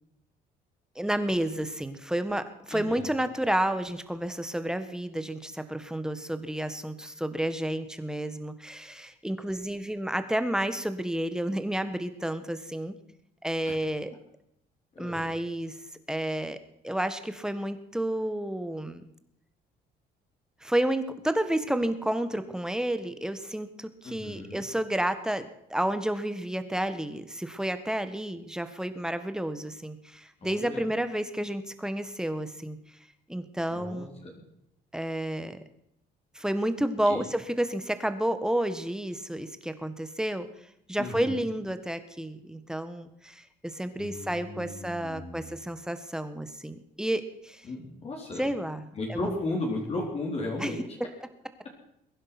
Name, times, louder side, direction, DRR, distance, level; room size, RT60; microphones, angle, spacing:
voice 1, 0.9-12.9 13.4-14.1 15.0-15.7 16.1-16.6 16.8-19.1 20.6-32.8 33.3-34.1 34.9-35.6 36.3-40.5 40.9-47.7 48.4-49.4 50.6-50.7, right 1 dB, 5° right, 10 dB, 1.5 m, -31 dB
voice 2, 2.7-3.2 13.6-13.7 14.9-15.4 24.0-24.6 30.4-30.9 33.7-34.4 37.0-37.3 41.0-41.4 44.0-45.5 47.6-48.5 49.0-50.9, left 2 dB, 40° left, -1 dB, 4.2 m, -35 dB
22.0 x 11.0 x 6.0 m, 0.78 s
cardioid pair, 110°, 17 cm